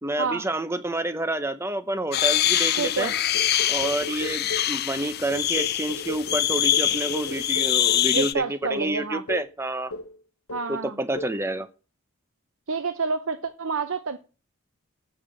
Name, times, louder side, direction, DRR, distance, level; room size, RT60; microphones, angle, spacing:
voice 1, 0.0-3.1 3.7-9.9 10.7-11.7, right 1 dB, 10° right, 0.7 m, -29 dB
sound 1, 2.1-8.3, left 11 dB, 45° left, 0.5 m, -24 dB
voice 2, 2.8-3.1 8.1-9.2 10.5-11.0 12.7-14.2, right 4 dB, 65° right, 0.8 m, -28 dB
sound 2, 3.3-4.8 5.3-8.1 8.6-8.8 9.3-9.6 9.9-10.2 10.5-10.8 11.1-11.4, left 2 dB, 80° left, 1.0 m, -36 dB
8.1 x 6.9 x 7.5 m
head